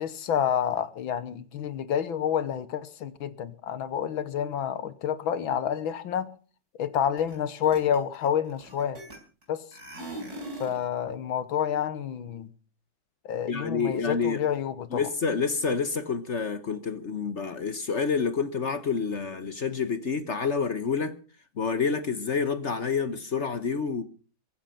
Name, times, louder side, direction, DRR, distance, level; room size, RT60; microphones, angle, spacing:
voice 1, 0.0-6.3 6.8-9.0 9.5-9.6 10.6-12.5 13.3-15.0, left 9 dB, 80° left, 2.0 m, -29 dB
sound 1, 7.2-7.4 7.6-9.4 9.7-10.8, right 1 dB, 45° right, 5.3 m, -40 dB
voice 2, 13.5-14.4 14.9-21.2 21.6-24.0, left 5 dB, 45° left, 1.1 m, -28 dB
23.0 x 9.1 x 5.8 m
omnidirectional pair, 2.2 m